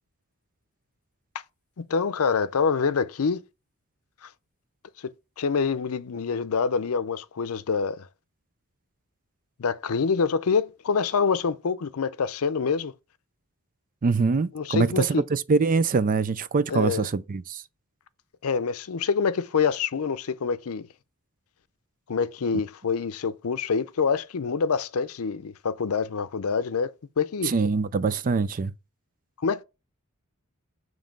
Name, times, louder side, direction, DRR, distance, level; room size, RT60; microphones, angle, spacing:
voice 1, 1.8-3.4 4.2-4.3 5.0-5.1 5.4-8.1 9.6-12.9 14.5-15.2 16.7-17.1 18.4-20.9 22.1-27.5 29.4-29.6, left 5 dB, 85° left, 0.6 m, -26 dB
voice 2, 14.0-17.6 27.4-28.7, right 4 dB, 40° right, 0.4 m, -24 dB
7.2 x 3.2 x 5.2 m
head